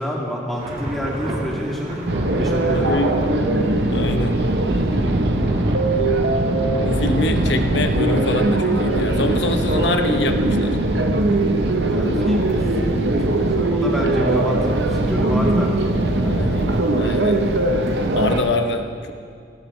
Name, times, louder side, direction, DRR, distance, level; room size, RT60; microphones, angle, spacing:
voice 1, 0.0-2.1 2.3-3.0 7.1-7.2 11.9-16.4 17.0-17.3, equal, ahead, -4 dB, 2.4 m, -28 dB
Thunder / Rain, 0.6-18.3, equal, 35° right, 1.9 m, -33 dB
sound 1, 2.1-18.4, right 2 dB, 65° right, 0.9 m, -20 dB
voice 2, 2.7-3.3 3.9-4.4 6.9-10.8 16.3-17.4 18.1-19.1, left 2 dB, 70° left, 6 dB, 0.9 m, -25 dB
18.5 x 15.5 x 3.2 m, 2.3 s
head